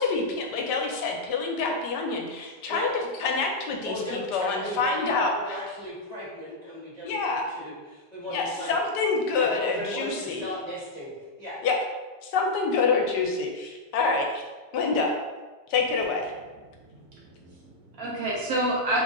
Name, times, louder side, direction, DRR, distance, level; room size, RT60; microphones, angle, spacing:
voice 1, 0.0-2.9 3.2-5.6 7.0-7.4 8.3-10.4 11.6-11.8 12.3-14.4 14.7-15.1 15.7-16.3, left 4 dB, 85° left, 2 dB, 1.2 m, -26 dB
voice 2, 3.8-8.7 9.3-11.1 11.4-11.6, equal, 30° right, -9 dB, 1.0 m, -36 dB
voice 3, 16.9-19.0, right 1 dB, 65° right, -3 dB, 1.0 m, -29 dB
3.1 x 2.3 x 3.6 m, 1.3 s
omnidirectional pair, 1.8 m